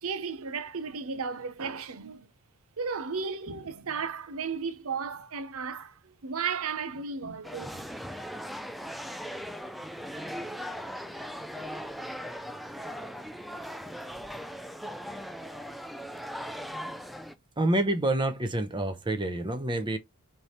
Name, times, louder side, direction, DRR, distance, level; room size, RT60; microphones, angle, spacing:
voice 1, 0.0-2.3 2.8-7.9, right 5 dB, 70° right, 0.7 m, -34 dB
sound 1, 7.4-17.3, equal, ahead, 0.3 m, -39 dB
voice 2, 17.6-20.0, right 1 dB, 20° right, 0.7 m, -27 dB
4.0 x 3.4 x 3.2 m
head